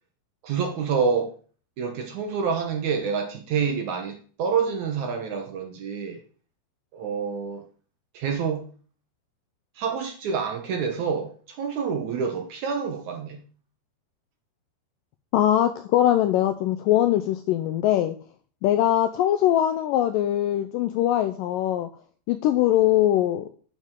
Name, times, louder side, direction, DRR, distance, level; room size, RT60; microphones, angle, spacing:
voice 1, 0.4-1.3 1.8-6.2 6.9-7.6 8.1-8.7 9.8-11.3 11.6-13.4, right 6 dB, 70° right, 1.9 m, -27 dB
voice 2, 15.3-18.2 18.6-21.9 22.3-23.5, left 12 dB, 90° left, 1.9 m, -22 dB
9.4 x 7.5 x 3.7 m
omnidirectional pair, 4.5 m